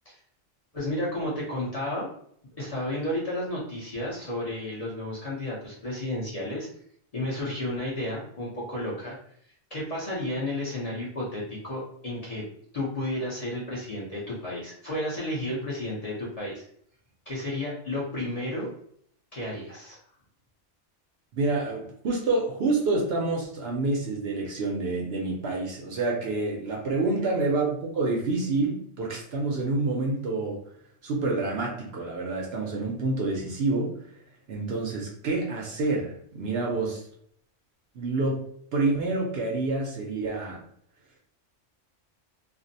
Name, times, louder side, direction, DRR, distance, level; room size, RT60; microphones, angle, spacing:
voice 1, 0.7-2.1 2.6-6.7 7.1-9.2 9.7-12.4 12.7-16.6 17.3-18.7 19.3-20.0, left 1 dB, 40° left, -6 dB, 0.7 m, -32 dB
voice 2, 21.3-30.6 31.0-34.1 34.5-37.0 37.9-38.5 38.7-40.6, right 3 dB, 65° right, -1 dB, 0.8 m, -28 dB
2.5 x 2.0 x 2.6 m, 0.64 s
omnidirectional pair, 1.3 m